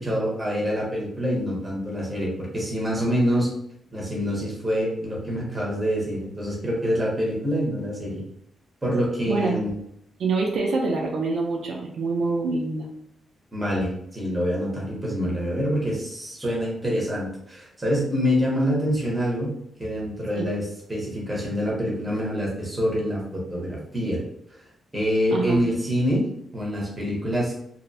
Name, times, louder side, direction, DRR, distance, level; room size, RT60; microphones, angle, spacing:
voice 1, 0.0-3.5 3.9-8.2 8.8-9.7 13.5-19.5 19.8-24.2 24.9-26.3 26.5-27.5, equal, 10° right, -4 dB, 0.8 m, -26 dB
voice 2, 9.2-9.6 10.2-12.9 20.3-20.5 25.3-25.6, right 3 dB, 65° right, -1 dB, 0.4 m, -25 dB
2.7 x 2.0 x 2.6 m, 0.75 s
wide cardioid pair, 165°, 0 cm